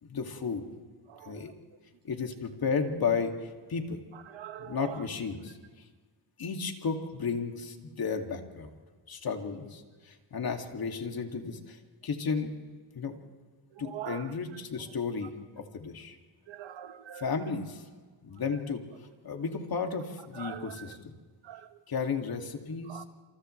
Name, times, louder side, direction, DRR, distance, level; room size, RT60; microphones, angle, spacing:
voice 1, 0.0-0.7 1.2-1.5 2.0-4.0 4.6-5.8 6.4-8.7 9.1-12.5 12.9-13.2 13.8-16.2 17.1-17.8 18.2-21.1 21.9-23.0, left 5 dB, 55° left, 3 dB, 2.6 m, -33 dB
voice 2, 1.1-1.4 4.3-5.0 13.7-14.3 16.5-17.3 20.3-21.0 21.4-21.7 22.9-23.0, right 11 dB, 80° right, 9 dB, 1.5 m, -43 dB
29.0 x 27.5 x 3.4 m, 1.5 s
cardioid pair, 100°, 43 cm